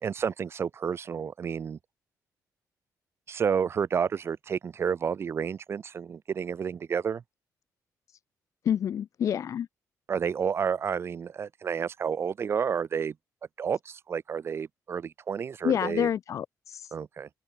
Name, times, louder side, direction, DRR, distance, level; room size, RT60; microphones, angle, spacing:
voice 1, 0.0-1.8 3.3-7.2 10.1-13.1 13.6-16.1 16.9-17.3, right 7 dB, 40° right, 0.8 m, -30 dB
voice 2, 8.6-9.7 15.6-16.9, left 9 dB, 50° left, 0.6 m, -28 dB
cardioid pair, 150°, 7 cm